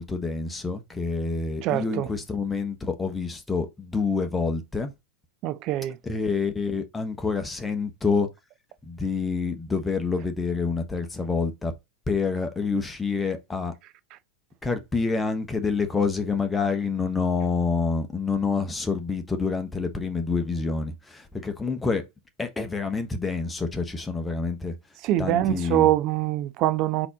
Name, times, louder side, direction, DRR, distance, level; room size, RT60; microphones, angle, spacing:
voice 1, 0.0-4.9 6.0-8.3 8.8-11.7 12.1-13.7 14.6-22.0 22.4-24.7 25.2-25.9, left 4 dB, 10° left, 0.9 m, -27 dB
voice 2, 1.6-2.1 5.4-6.0 25.0-27.1, right 14 dB, 40° right, 0.5 m, -24 dB
4.1 x 2.9 x 3.7 m
figure-of-eight pair, 90°, 0 cm